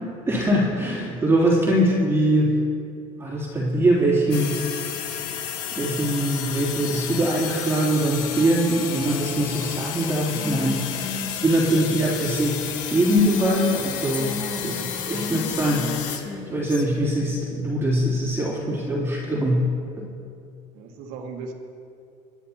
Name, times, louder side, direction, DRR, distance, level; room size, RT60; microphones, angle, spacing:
voice 1, 0.0-2.5 3.1-4.6 5.8-11.2 11.4-12.6 12.9-14.4 14.6-14.8 15.1-19.7, right 1 dB, 15° right, -6 dB, 3.2 m, -22 dB
sound 1, 4.3-16.2, left 9 dB, 80° left, 1.4 m, -32 dB
Female speech woman speaking, 10.3-13.8 14.1-16.8, left 4 dB, 25° left, 1.4 m, -35 dB
voice 2, 14.6-15.0 20.7-21.5, right 5 dB, 70° right, 1 dB, 1.9 m, -37 dB
23.0 x 10.5 x 2.9 m, 2.4 s
supercardioid pair, 100°, 17 cm